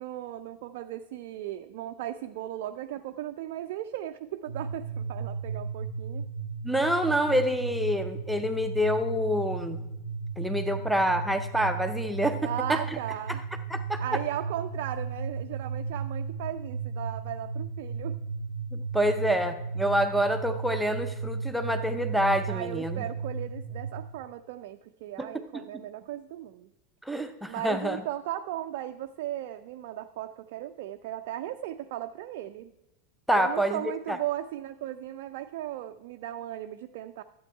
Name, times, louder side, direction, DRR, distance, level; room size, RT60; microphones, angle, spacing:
voice 1, 0.0-6.2 12.4-13.4 14.0-18.2 22.5-26.7 27.5-32.7 33.3-37.2, right 13 dB, 55° right, 7 dB, 0.4 m, -37 dB
sound 1, 4.5-24.0, right 5 dB, 80° left, 1.1 m, -35 dB
voice 2, 6.6-9.8 10.4-12.8 13.3-13.4 13.7-14.0 18.7-23.0 25.2-25.6 27.0-28.0 33.3-34.2, equal, ahead, 5 dB, 0.6 m, -27 dB
11.5 x 7.9 x 4.5 m, 0.89 s
figure-of-eight pair, 85°, 0 cm